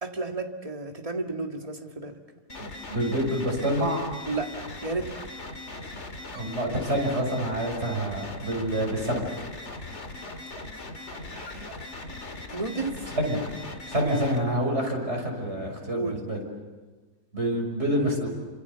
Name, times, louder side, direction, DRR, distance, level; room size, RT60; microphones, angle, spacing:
voice 1, 0.0-2.2 4.3-5.2 11.3-11.7 12.5-13.0 15.9-16.2, right 3 dB, 20° right, 3 dB, 2.1 m, -32 dB
sound 1, 2.5-14.4, left 2 dB, 45° left, 2.4 m, -39 dB
voice 2, 2.6-4.1 6.3-9.2 13.1-13.4 13.9-16.4 17.3-18.3, right 1 dB, 40° right, 1 dB, 6.5 m, -27 dB
29.0 x 26.5 x 7.0 m, 1.3 s
omnidirectional pair, 1.7 m